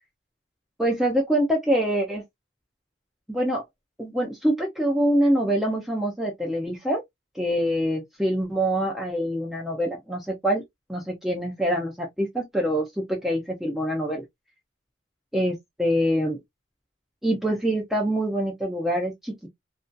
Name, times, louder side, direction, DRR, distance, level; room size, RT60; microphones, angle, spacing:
voice 1, 0.8-2.2 3.3-3.6 4.0-7.0 7.4-10.6 10.9-14.2 15.3-16.4 17.2-19.5, equal, ahead, 0.5 m, -25 dB
2.5 x 2.3 x 2.2 m
head